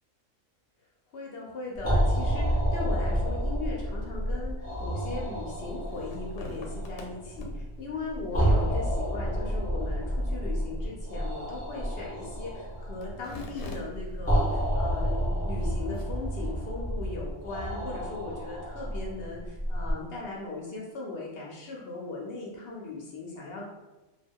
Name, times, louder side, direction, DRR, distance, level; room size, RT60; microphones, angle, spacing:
voice 1, 1.1-23.6, left 3 dB, 60° left, -2 dB, 0.6 m, -38 dB
sound 1, 1.7-19.9, equal, 10° left, 0.8 m, -30 dB
sound 2, 5.4-16.5, left 2 dB, 90° left, 1.0 m, -49 dB
2.3 x 2.2 x 3.5 m, 1.1 s
omnidirectional pair, 1.4 m